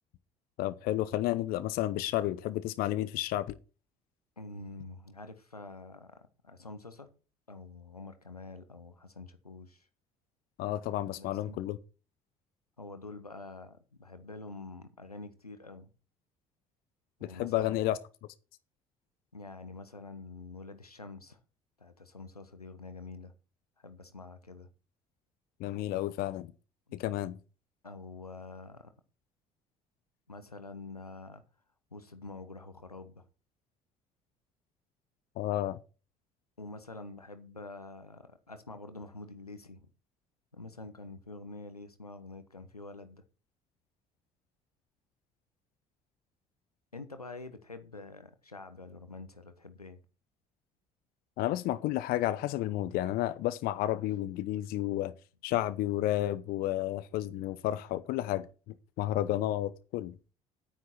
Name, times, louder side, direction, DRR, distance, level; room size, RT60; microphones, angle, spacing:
voice 1, 0.6-3.6 10.6-11.8 17.2-18.0 25.6-26.5 26.9-27.3 35.4-35.8 51.4-55.1 55.4-58.5 59.0-60.1, left 14 dB, 55° left, 0.8 m, -31 dB
voice 2, 4.4-7.1 7.5-9.9 11.1-11.6 12.8-15.9 17.2-17.8 19.3-21.4 21.8-23.3 23.8-24.7 27.8-28.9 30.3-31.4 31.9-33.3 36.6-39.9 40.5-43.2 46.9-50.0, left 3 dB, 90° left, 1.1 m, -46 dB
9.6 x 9.4 x 4.5 m
figure-of-eight pair, 55°, 19 cm